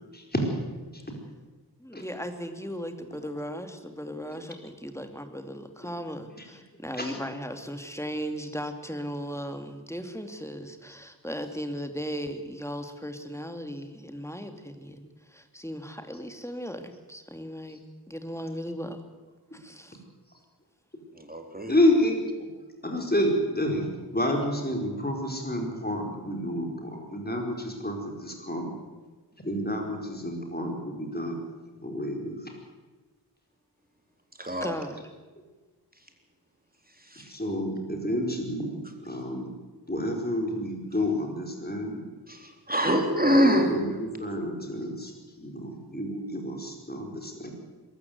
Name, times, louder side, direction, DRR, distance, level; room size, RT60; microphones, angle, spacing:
voice 1, 0.1-0.5 0.8-1.0 1.9-2.0 7.0-7.2 19.5-19.6 21.7-22.5 22.8-28.7 29.4-31.4 31.8-32.5 37.3-39.5 39.9-42.0 43.3-47.5, left 1 dB, 25° left, 2 dB, 4.6 m, -29 dB
voice 2, 1.8-19.0 19.5-20.0 34.6-35.0, equal, 5° left, 7 dB, 2.5 m, -37 dB
voice 3, 21.2-21.8 34.4-34.7 37.0-37.3 42.3-43.8, equal, 20° right, 3 dB, 3.7 m, -25 dB
22.5 x 14.0 x 9.5 m, 1.3 s
wide cardioid pair, 40°, 41 cm